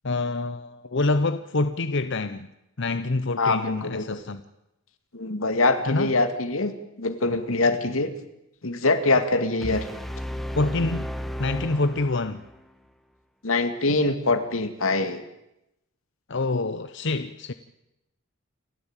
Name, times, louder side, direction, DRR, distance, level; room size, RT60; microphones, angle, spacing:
voice 1, 0.0-2.5 2.8-4.4 5.9-6.1 10.6-12.4 16.3-17.5, left 2 dB, 60° left, 11 dB, 0.9 m, -26 dB
voice 2, 3.4-4.2 5.1-6.7 7.0-8.1 8.6-9.9 13.4-15.2, left 2 dB, 90° left, 9 dB, 2.3 m, -24 dB
sound 1, 9.6-12.6, equal, ahead, 1.4 m, -34 dB
29.0 x 14.0 x 9.0 m, 0.89 s
head